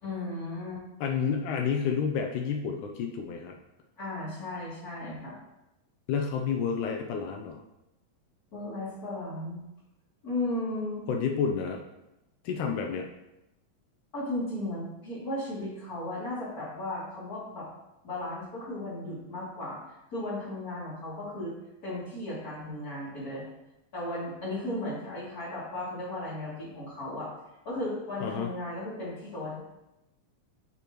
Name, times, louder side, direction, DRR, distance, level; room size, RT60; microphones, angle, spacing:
voice 1, 0.0-0.8 4.0-5.4 8.5-9.6 10.2-11.0 14.1-17.7 18.0-19.8 20.1-21.5 21.8-23.4 23.9-27.3 27.6-29.6, left 1 dB, 30° left, -8 dB, 2.9 m, -35 dB
voice 2, 1.0-3.5 6.1-7.6 11.1-11.8 12.5-13.1 28.2-28.5, left 6 dB, 80° left, 3 dB, 1.9 m, -30 dB
7.7 x 6.8 x 3.0 m, 0.93 s
omnidirectional pair, 4.0 m